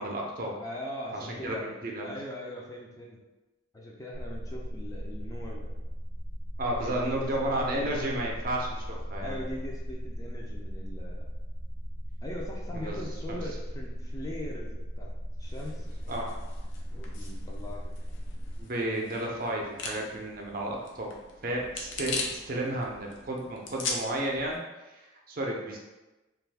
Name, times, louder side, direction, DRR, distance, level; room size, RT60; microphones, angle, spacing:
voice 1, 0.0-0.6 1.4-2.1 6.6-9.4 12.7-13.0 13.3-13.4 16.1-16.3 18.6-21.1 21.4-24.6 24.9-25.8, right 1 dB, 45° right, -1 dB, 0.5 m, -32 dB
voice 2, 0.6-1.6 2.0-3.2 3.7-5.7 6.8-8.0 9.2-11.3 12.2-15.1 15.4-15.9 16.9-17.9, left 1 dB, 15° left, -2 dB, 0.4 m, -41 dB
sound 1, 4.1-18.6, equal, 50° left, 0.9 m, -37 dB
sound 2, 15.4-24.6, left 3 dB, 70° left, 0.5 m, -40 dB
2.6 x 2.3 x 3.3 m, 1.1 s
head